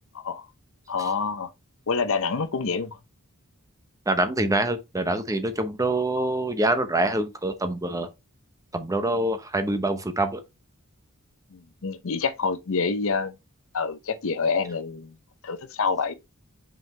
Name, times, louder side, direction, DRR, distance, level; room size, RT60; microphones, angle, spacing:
voice 1, 0.9-1.5 1.9-3.0 5.8-6.3 7.0-7.1 11.5-13.4 13.7-15.1 15.4-16.1, left 5 dB, 65° left, 0.7 m, -27 dB
voice 2, 4.1-8.1 8.7-10.4, right 1 dB, 15° right, 0.9 m, -25 dB
5.6 x 5.2 x 3.3 m
head